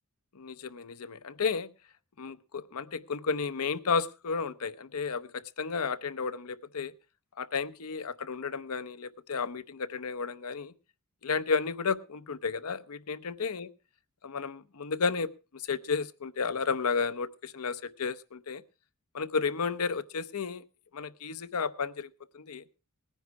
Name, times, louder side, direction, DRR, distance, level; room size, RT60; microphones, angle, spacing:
voice 1, 0.3-1.7 2.2-6.9 7.4-10.7 11.2-13.7 14.2-18.6 19.1-20.6 20.9-22.1 22.3-22.6, left 5 dB, 85° left, 13 dB, 0.7 m, -32 dB
18.5 x 10.0 x 4.5 m, 0.31 s
head